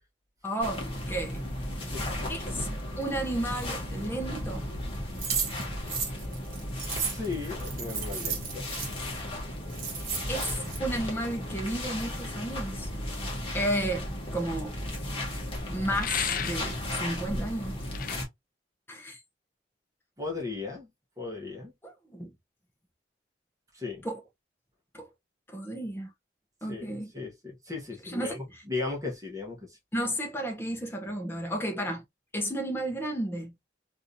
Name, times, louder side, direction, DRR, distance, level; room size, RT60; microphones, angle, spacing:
voice 1, 0.4-1.5 2.3-2.7 3.0-4.7 10.3-12.9 13.5-14.0 14.3-14.8 15.7-17.8 18.9-19.2 21.8-22.3 24.0-24.2 24.9-25.1 25.5-26.1 26.6-27.1 28.1-28.4 29.9-32.0 32.3-33.5, right 1 dB, 10° left, 0.7 m, -32 dB
sound 1, 0.6-18.2, left 1 dB, 30° left, 1.0 m, -35 dB
voice 2, 1.8-2.5 6.9-8.7 20.2-20.9 21.2-21.7 23.7-24.1 26.7-29.8, left 3 dB, 20° right, 1.0 m, -37 dB
sound 2, 5.2-8.9 9.4-9.5 9.7-10.8, right 6 dB, 45° right, 1.2 m, -33 dB
sound 3, 16.0-16.8 17.9-18.2, left 8 dB, 45° left, 0.4 m, -32 dB
3.4 x 2.6 x 2.6 m
head